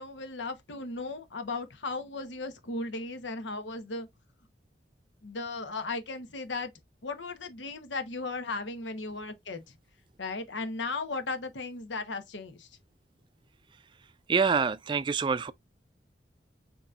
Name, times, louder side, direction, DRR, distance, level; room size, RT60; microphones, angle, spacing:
voice 1, 0.0-4.1 5.2-6.7 7.0-9.6 10.2-12.7, left 3 dB, 90° left, 1.0 m, -36 dB
voice 2, 14.3-15.5, right 5 dB, 25° right, 0.3 m, -26 dB
6.9 x 3.0 x 2.4 m
head